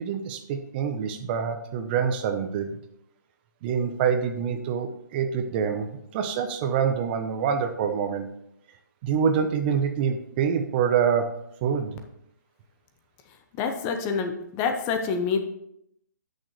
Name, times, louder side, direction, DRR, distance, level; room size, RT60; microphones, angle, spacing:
voice 1, 0.0-2.7 3.6-8.3 9.0-11.3 11.6-11.9, right 7 dB, 30° right, 7 dB, 0.8 m, -26 dB
voice 2, 13.6-15.4, left 5 dB, 25° left, 6 dB, 0.8 m, -27 dB
11.5 x 6.5 x 3.2 m, 0.75 s
hypercardioid pair, 150°, 10 cm